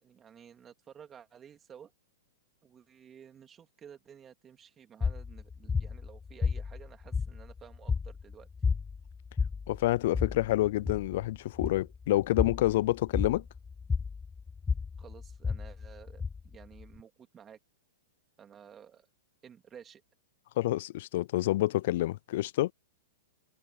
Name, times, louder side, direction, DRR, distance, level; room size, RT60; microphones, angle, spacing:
voice 1, 0.0-1.9 2.6-8.5 15.0-17.6 18.4-19.1 19.4-20.0, right 8 dB, 20° right, 3.2 m, -53 dB
sound 1, 5.0-17.0, left 5 dB, 15° left, 0.6 m, -33 dB
voice 2, 9.7-13.4 20.6-22.7, left 16 dB, 60° left, 0.3 m, -28 dB
hypercardioid pair, 125°, 0 cm